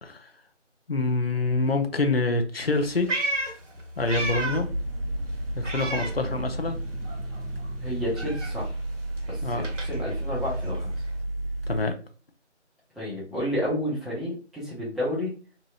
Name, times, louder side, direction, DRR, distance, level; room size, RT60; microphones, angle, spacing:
voice 1, 0.0-0.3 0.9-3.1 4.0-4.7 5.5-6.8 9.4-9.7 11.7-11.9, left 3 dB, 55° left, 5 dB, 0.5 m, -26 dB
Meow, 2.6-4.8 5.1-6.8 7.0-11.2, right 2 dB, 90° right, 1.0 m, -34 dB
sound 1, 4.0-11.8, right 1 dB, 55° right, 0.5 m, -32 dB
voice 2, 7.8-8.8 9.3-10.9 13.0-15.3, left 1 dB, ahead, -8 dB, 0.6 m, -31 dB
3.0 x 2.7 x 2.3 m, 0.36 s
figure-of-eight pair, 180°, 36 cm